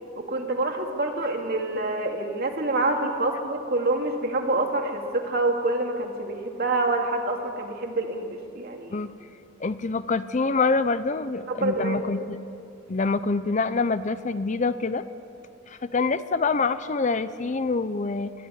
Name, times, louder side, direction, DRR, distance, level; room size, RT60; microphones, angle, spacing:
voice 1, 0.2-9.0 11.5-12.1, right 2 dB, 50° right, 2 dB, 2.3 m, -27 dB
voice 2, 9.6-12.4 12.9-15.0 15.7-18.3, left 4 dB, 40° left, 13 dB, 0.6 m, -26 dB
21.0 x 14.0 x 9.9 m, 2.6 s
head